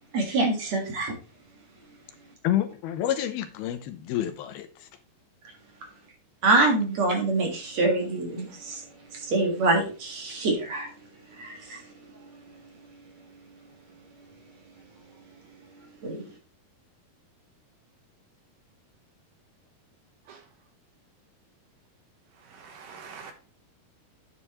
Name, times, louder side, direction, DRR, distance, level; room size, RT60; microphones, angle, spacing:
voice 1, 0.1-1.1 6.4-8.8 9.2-10.9 11.4-11.8 16.0-16.2, right 2 dB, 50° right, 2.7 m, -25 dB
voice 2, 2.4-4.9, left 11 dB, 80° left, 2.7 m, -29 dB
voice 3, 22.5-23.3, right 6 dB, 70° right, 2.4 m, -44 dB
9.1 x 8.5 x 3.1 m
omnidirectional pair, 4.5 m